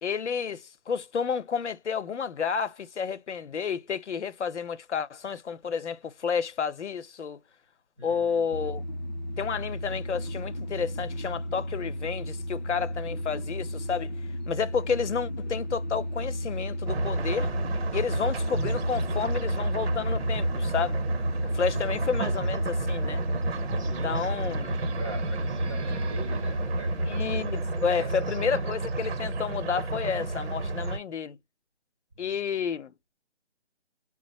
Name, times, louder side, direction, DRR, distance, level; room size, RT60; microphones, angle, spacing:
voice 1, 0.0-7.4 8.0-8.8 9.4-14.1 14.5-17.5 17.9-21.0 21.5-23.2 23.8-24.7 27.1-31.4 32.2-32.9, left 6 dB, 80° left, 0.7 m, -31 dB
voice 2, 8.0-8.8 21.7-22.1 23.8-27.5 28.0-28.8 32.3-32.4, right 2 dB, 30° right, 0.5 m, -44 dB
sound 1, 8.5-27.5, left 1 dB, 40° left, 0.5 m, -34 dB
sound 2, 16.9-31.0, right 2 dB, 60° right, 0.8 m, -31 dB
sound 3, 23.6-29.8, right 7 dB, 85° right, 0.6 m, -50 dB
3.3 x 2.0 x 2.8 m
hypercardioid pair, 165°, 34 cm